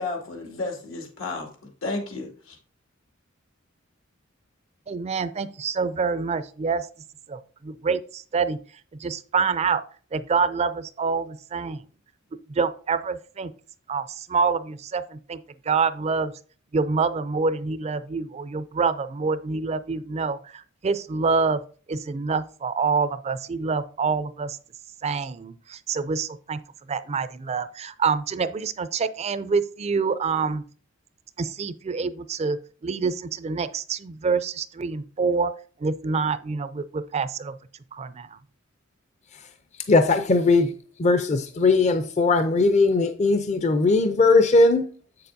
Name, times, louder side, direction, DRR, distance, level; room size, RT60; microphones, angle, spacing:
voice 1, 0.0-1.5 1.8-2.6, left 3 dB, 85° left, 2.2 m, -32 dB
voice 2, 4.9-6.9 7.3-8.6 9.0-9.8 10.1-11.8 12.5-13.5 13.9-15.4 15.7-16.3 16.7-21.6 21.9-24.6 25.0-26.6 26.9-30.6 31.4-32.6 32.8-35.5 35.8-37.5 37.9-38.4, right 5 dB, 30° right, 0.4 m, -26 dB
voice 3, 39.9-40.7 41.0-44.9, left 3 dB, 35° left, 0.5 m, -19 dB
7.8 x 6.8 x 2.6 m
head